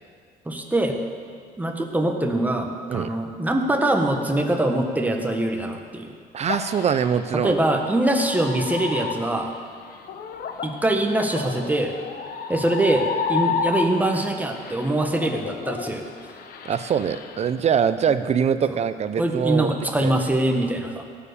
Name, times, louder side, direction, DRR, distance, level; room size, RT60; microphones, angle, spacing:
voice 1, 0.4-1.0 1.6-6.1 7.4-9.5 10.6-11.9 12.5-16.1 19.2-21.0, right 1 dB, 10° right, 3 dB, 1.4 m, -23 dB
voice 2, 6.3-7.6 16.6-19.7 20.0-20.1, right 7 dB, 40° right, 12 dB, 0.6 m, -23 dB
sound 1, 6.5-14.2 14.5-17.5, left 6 dB, 60° left, 1.1 m, -31 dB
17.0 x 7.2 x 6.8 m, 2.1 s
cardioid pair, 110°, 17 cm